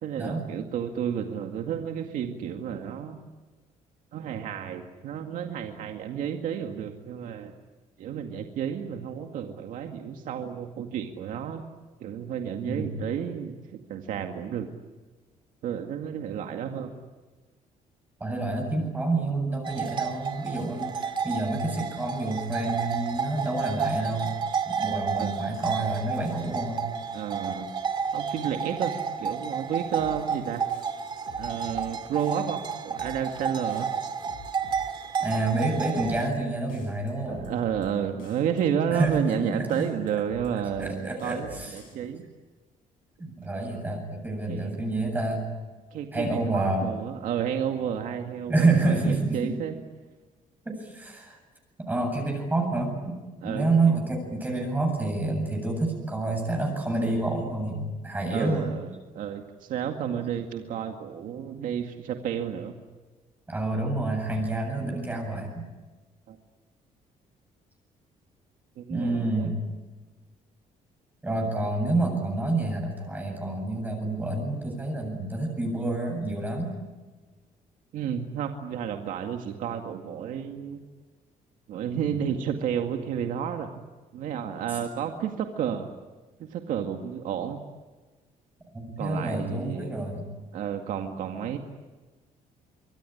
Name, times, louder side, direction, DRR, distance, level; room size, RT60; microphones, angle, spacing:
voice 1, 0.0-3.2 4.1-7.5 8.0-11.6 12.0-13.6 13.9-14.7 15.6-16.9 25.2-25.3 27.1-27.7 28.1-28.9 29.2-30.6 31.4-33.9 37.3-42.2 43.5-43.8 44.5-44.7 45.9-49.8 53.4-53.9 58.3-62.8 66.3-66.4 68.8-69.5 77.9-80.8 81.7-83.7 84.1-85.9 86.4-87.6 89.0-89.9 90.5-91.6, right 8 dB, 70° right, 4 dB, 2.1 m, -31 dB
voice 2, 18.2-24.4 24.6-26.9 35.2-37.5 38.9-39.8 40.8-41.7 43.2-45.4 46.1-46.9 48.5-49.5 50.6-51.4 51.8-53.2 53.4-58.7 63.5-65.7 68.9-69.6 71.2-76.7 82.1-82.3 88.7-90.3, right 2 dB, 15° right, 1 dB, 7.9 m, -28 dB
sound 1, 19.6-36.3, right 6 dB, 35° right, 2.2 m, -31 dB
sound 2, 29.9-30.4 30.7-31.9 32.2-32.6 32.9-33.4 33.7-34.9 35.2-35.6 35.9-36.4 36.7-37.9 38.2-38.6 38.9-39.4 39.7-40.9 41.2-41.9, left 6 dB, 90° left, 7.8 m, -48 dB
25.5 x 23.5 x 10.0 m, 1.3 s
cardioid pair, 150°, 14 cm